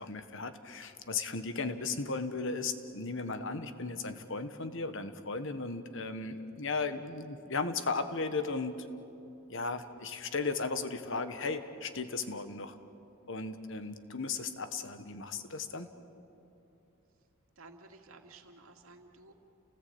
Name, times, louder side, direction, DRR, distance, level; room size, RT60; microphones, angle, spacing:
voice 1, 0.0-8.9 9.5-12.8 13.3-15.9, left 4 dB, 60° left, 9 dB, 1.5 m, -36 dB
voice 2, 17.6-19.3, right 3 dB, 80° right, 3 dB, 2.3 m, -54 dB
29.5 x 19.0 x 8.8 m, 2.8 s
head